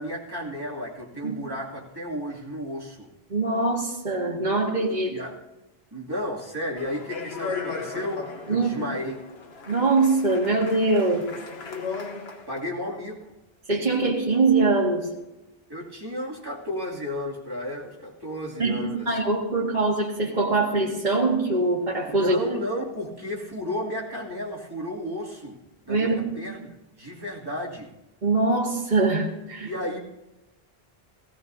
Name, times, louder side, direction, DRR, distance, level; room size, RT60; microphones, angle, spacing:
voice 1, 0.0-3.1 5.1-5.4 5.9-9.2 12.5-13.2 15.7-19.2 22.1-25.6 25.8-27.9 29.6-30.0, left 1 dB, 20° right, -4 dB, 2.5 m, -33 dB
voice 2, 3.3-5.1 8.5-8.8 9.7-11.3 13.7-15.1 18.6-22.4 25.9-26.5 28.2-29.7, right 3 dB, 45° right, -5 dB, 1.9 m, -23 dB
Speech, 6.8-12.6, left 4 dB, 80° left, 1.3 m, -36 dB
17.5 x 17.0 x 2.7 m, 1.0 s
omnidirectional pair, 1.0 m